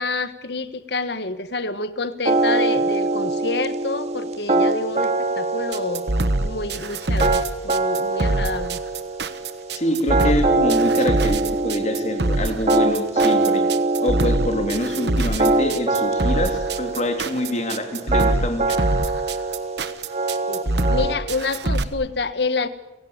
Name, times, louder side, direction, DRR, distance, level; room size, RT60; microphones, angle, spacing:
voice 1, 0.0-6.1 6.4-8.8 15.0-15.3 20.5-22.7, left 3 dB, 60° left, 13 dB, 1.4 m, -28 dB
sound 1, 2.2-21.2, right 2 dB, 35° right, 2.2 m, -23 dB
sound 2, 5.7-21.8, right 2 dB, 60° right, 1.3 m, -24 dB
voice 2, 9.7-13.7 14.0-18.8, left 1 dB, 35° left, 5 dB, 3.3 m, -25 dB
29.5 x 17.5 x 8.8 m, 1.1 s
head